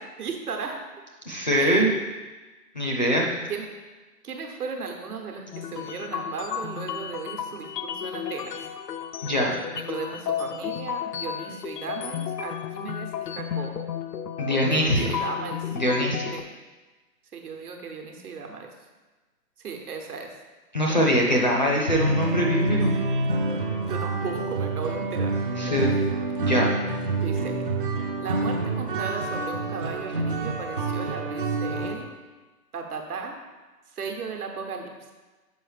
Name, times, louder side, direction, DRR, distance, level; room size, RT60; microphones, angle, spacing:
voice 1, 0.2-0.8 1.5-1.8 3.5-3.7 4.2-8.7 9.7-13.9 14.7-15.8 16.3-16.5 17.3-18.7 19.6-20.3 23.9-25.3 25.6-26.0 27.1-27.5 28.2-32.1 32.7-33.4 33.9-35.1, right 5 dB, 65° right, 3 dB, 1.1 m, -36 dB
voice 2, 1.3-1.9 2.7-3.3 9.2-9.5 14.4-15.1 15.7-16.3 20.7-22.9 25.6-25.9 26.4-26.7, equal, 30° left, -1 dB, 0.5 m, -23 dB
sound 1, 5.5-16.4, left 9 dB, 85° left, 0.6 m, -33 dB
sound 2, 21.9-32.0, right 2 dB, 35° right, 0.5 m, -27 dB
6.3 x 4.8 x 3.3 m, 1.2 s
hypercardioid pair, 150°, 48 cm